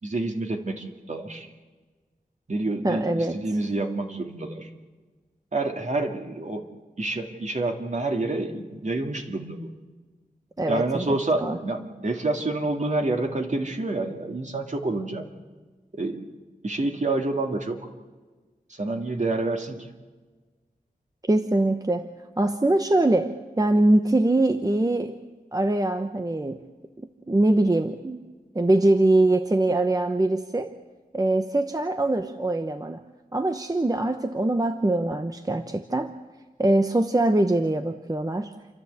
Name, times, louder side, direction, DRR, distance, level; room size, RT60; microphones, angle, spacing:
voice 1, 0.0-1.5 2.5-4.7 5.5-6.7 7.0-9.7 10.7-15.3 15.9-16.3 16.6-17.8 18.7-19.9, right 2 dB, 50° right, 3 dB, 2.2 m, -28 dB
voice 2, 2.8-3.4 10.6-11.6 21.3-22.1 22.4-25.2 25.5-26.6 27.0-28.2 28.5-30.7 31.1-33.0 33.3-36.1 36.6-38.5, right 2 dB, 25° right, 7 dB, 0.9 m, -23 dB
28.5 x 12.5 x 8.2 m, 1.3 s
wide cardioid pair, 80°, 16 cm